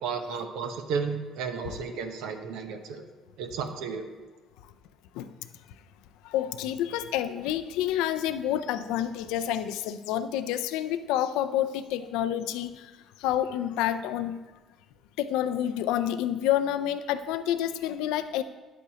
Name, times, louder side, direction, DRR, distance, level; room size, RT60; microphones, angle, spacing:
voice 1, 0.0-3.0 3.4-4.1, right 5 dB, 80° right, 6 dB, 0.8 m, -33 dB
voice 2, 6.2-12.9 13.2-14.4 15.2-18.4, left 11 dB, 85° left, 11 dB, 0.4 m, -28 dB
10.0 x 8.3 x 2.9 m, 1.2 s
supercardioid pair, 75°, 0 cm